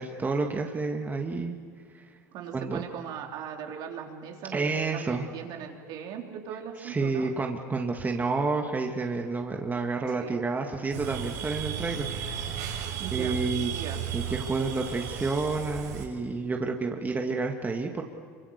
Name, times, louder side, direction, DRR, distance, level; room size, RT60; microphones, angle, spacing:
voice 1, 0.0-1.6 1.9-2.0 2.5-2.8 4.5-5.2 6.8-12.8 13.1-13.7 14.1-18.0, right 3 dB, 20° right, 2 dB, 2.1 m, -30 dB
voice 2, 2.3-7.3 10.2-10.4 13.0-13.4 13.7-14.0, right 8 dB, 60° right, 2 dB, 3.9 m, -39 dB
sound 1, 10.9-16.1, right 8 dB, 85° right, 6.6 m, -34 dB
27.0 x 24.5 x 6.8 m, 2.1 s
hypercardioid pair, 90°, 9 cm